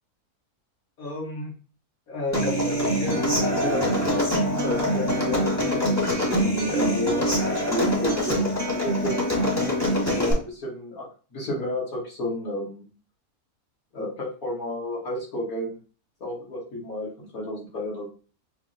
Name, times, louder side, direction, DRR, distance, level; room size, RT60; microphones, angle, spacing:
voice 1, 1.0-1.5 2.1-5.4 6.2-9.1 10.1-11.1 11.3-12.9 13.9-15.8 16.2-18.1, left 1 dB, 70° left, -5 dB, 1.9 m, -31 dB
Human voice / Acoustic guitar, 2.3-10.3, equal, 15° left, 0.8 m, -24 dB
5.8 x 2.0 x 2.5 m, 0.38 s
omnidirectional pair, 1.6 m